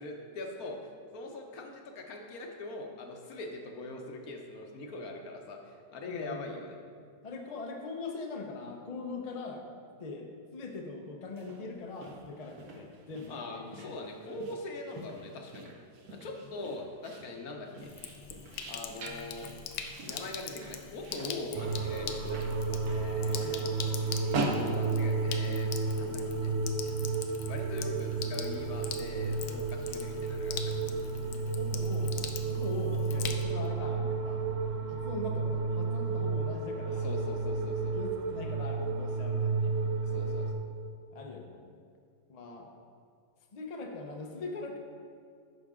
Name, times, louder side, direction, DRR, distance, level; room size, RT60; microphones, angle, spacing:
voice 1, 0.0-6.8 13.3-15.7 16.1-17.9 18.7-19.5 20.0-23.7 24.3-26.5 27.4-30.9 37.0-38.0 40.0-40.6, left 2 dB, 65° left, 2 dB, 1.2 m, -42 dB
voice 2, 6.0-6.6 7.2-9.6 10.0-10.3 10.5-13.8 14.3-14.4 16.2-16.4 23.3-24.2 31.5-34.5 34.9-37.1 37.9-39.8 41.1-41.7 42.3-42.7 43.5-44.8, left 3 dB, 50° left, 2 dB, 0.4 m, -41 dB
sound 1, 11.3-25.7, right 2 dB, 65° right, 1.3 m, -42 dB
Sink (filling or washing), 17.8-33.7, left 8 dB, 85° left, 1.2 m, -43 dB
sound 2, 21.6-40.5, right 4 dB, 80° right, 0.5 m, -32 dB
9.5 x 6.0 x 3.6 m, 2.2 s
omnidirectional pair, 1.8 m